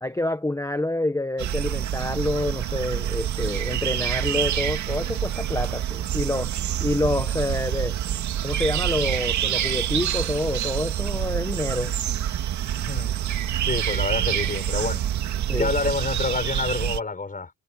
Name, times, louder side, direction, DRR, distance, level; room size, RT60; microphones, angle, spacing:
voice 1, 0.0-8.0 8.4-11.9 15.5-15.7, left 2 dB, 10° left, 1.5 m, -27 dB
sound 1, 1.4-17.0, right 10 dB, 70° right, 2.2 m, -27 dB
voice 2, 13.7-15.0 15.5-17.5, left 3 dB, 30° left, 5.5 m, -27 dB
cardioid pair, 90°, 30 cm